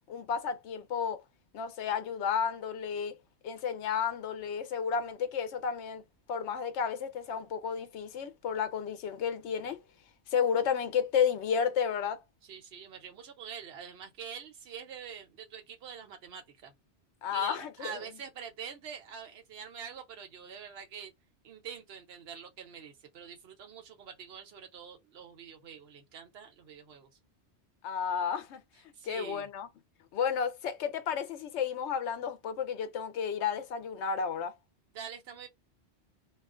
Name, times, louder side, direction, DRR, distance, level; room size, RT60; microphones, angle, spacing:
voice 1, 0.1-1.2 1.5-3.2 3.4-6.0 6.3-9.8 10.3-12.2 17.2-18.0 27.8-28.6 29.0-29.7 30.1-34.5, left 7 dB, 85° left, 0.9 m, -32 dB
voice 2, 12.4-16.7 17.3-21.1 21.4-27.1 28.9-29.5 34.9-35.5, right 7 dB, 65° right, 0.9 m, -45 dB
2.4 x 2.4 x 2.4 m
omnidirectional pair, 1.2 m